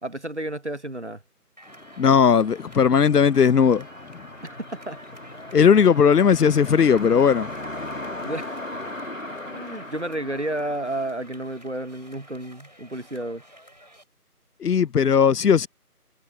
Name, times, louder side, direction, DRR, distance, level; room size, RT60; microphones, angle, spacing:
voice 1, 0.0-1.2 4.4-5.0 8.2-8.6 9.4-13.4, right 1 dB, 50° right, 0.9 m, -31 dB
sound 1, 1.6-14.1, equal, 30° right, 3.8 m, -51 dB
sound 2, 1.7-11.9, left 1 dB, 55° left, 2.1 m, -38 dB
voice 2, 2.0-3.9 5.5-7.5 14.6-15.7, left 7 dB, 80° left, 0.6 m, -17 dB
sound 3, 2.1-13.2, left 1 dB, 35° left, 7.3 m, -52 dB
figure-of-eight pair, 180°, 46 cm